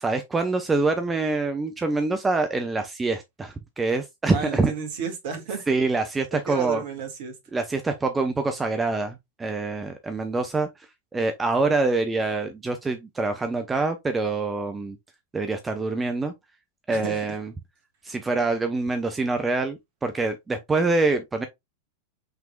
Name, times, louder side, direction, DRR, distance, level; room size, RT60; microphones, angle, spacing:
voice 1, 0.0-4.7 5.7-6.8 7.5-10.7 11.1-15.0 15.3-16.3 16.9-17.5 18.0-21.5, right 3 dB, 15° right, 0.6 m, -25 dB
voice 2, 4.3-5.6 6.3-7.3 16.9-17.2, right 7 dB, 50° right, 1.6 m, -32 dB
5.6 x 3.4 x 2.3 m
figure-of-eight pair, 90°, 0 cm